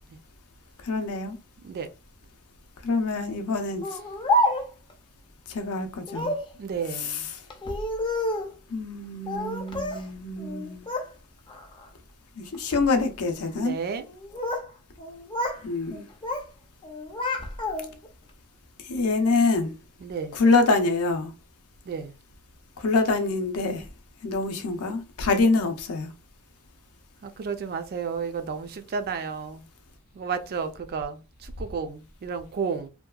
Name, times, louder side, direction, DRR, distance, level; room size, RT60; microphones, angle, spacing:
voice 1, 0.8-1.4 2.8-3.9 5.5-6.3 7.0-7.2 8.7-10.9 12.4-13.8 15.6-16.0 18.9-19.7 20.3-21.3 22.8-23.8 24.2-26.1, left 3 dB, 70° left, 0.5 m, -25 dB
Speech, 3.8-4.9 6.1-6.5 7.5-8.6 9.3-10.1 10.4-11.1 11.5-11.9 12.5-12.9 14.0-14.7 15.0-15.6 15.9-16.5 16.8-18.1, left 1 dB, 20° left, 0.4 m, -29 dB
voice 2, 6.6-7.3 13.5-14.0 20.0-20.3 21.9-22.1 27.2-29.6 30.1-32.9, right 5 dB, 45° right, 0.3 m, -32 dB
2.7 x 2.2 x 2.3 m
head